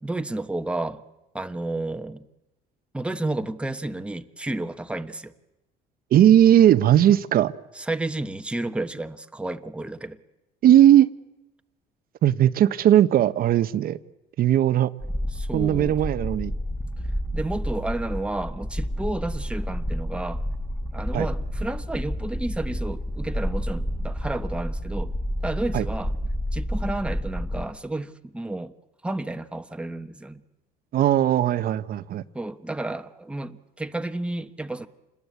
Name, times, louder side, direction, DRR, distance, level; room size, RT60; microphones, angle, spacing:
voice 1, 0.0-1.0 1.3-2.3 2.9-5.3 7.8-10.2 15.3-16.0 17.3-20.4 20.9-25.1 25.4-26.1 26.5-28.7 29.0-30.4 32.3-34.9, right 2 dB, 5° right, 1.2 m, -31 dB
voice 2, 6.1-7.5 10.6-11.1 12.2-14.0 14.4-14.9 15.5-16.5 21.1-21.3 25.7-25.9 30.9-32.2, right 11 dB, 60° right, 0.9 m, -18 dB
sound 1, 15.0-27.6, equal, 10° left, 1.9 m, -30 dB
27.5 x 20.5 x 8.4 m
cardioid pair, 110°, 17 cm